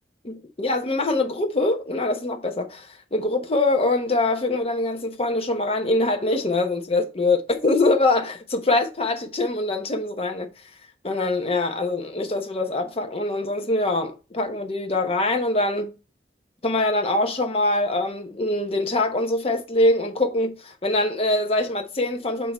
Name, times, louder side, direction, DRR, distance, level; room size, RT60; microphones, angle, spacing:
voice 1, 0.2-10.5 11.0-16.0 16.6-22.5, left 2 dB, 35° left, 0.9 m, -23 dB
8.1 x 2.9 x 4.2 m
head